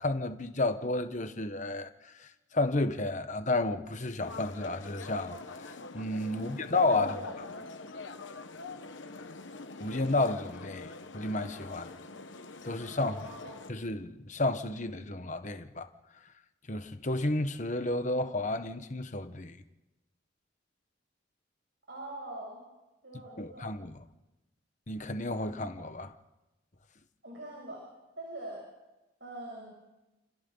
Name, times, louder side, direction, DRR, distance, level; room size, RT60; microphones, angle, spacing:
voice 1, 0.0-1.9 2.2-5.4 5.9-7.2 9.8-11.9 12.6-13.1 13.7-15.9 16.7-19.6 23.4-23.9 24.9-26.1, left 2 dB, 40° left, 1.3 m, -31 dB
sound 1, 4.2-13.7, left 3 dB, 75° left, 1.2 m, -44 dB
voice 2, 6.9-7.7 13.0-13.6 21.9-22.6 23.0-23.7 27.2-27.9 28.2-28.7 29.2-29.7, right 1 dB, 60° right, 7.3 m, -43 dB
30.0 x 29.0 x 4.0 m
head